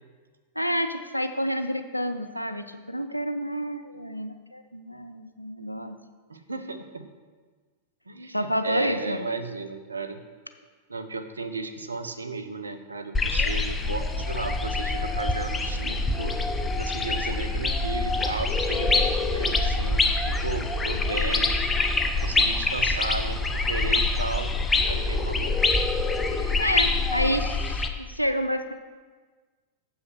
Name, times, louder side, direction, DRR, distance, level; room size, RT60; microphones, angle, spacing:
voice 1, 0.6-6.0 8.3-9.2 26.3-28.7, equal, 90° left, 9 dB, 0.5 m, -29 dB
voice 2, 6.3-7.1 8.1-10.2 10.9-16.4 16.8-21.5 22.2-24.5 24.9-25.7 27.2-27.4, right 3 dB, 75° right, 8 dB, 0.7 m, -34 dB
sound 1, 13.1-27.9, left 3 dB, 15° left, 0.7 m, -25 dB
7.7 x 5.6 x 5.4 m, 1.4 s
figure-of-eight pair, 90°, 0 cm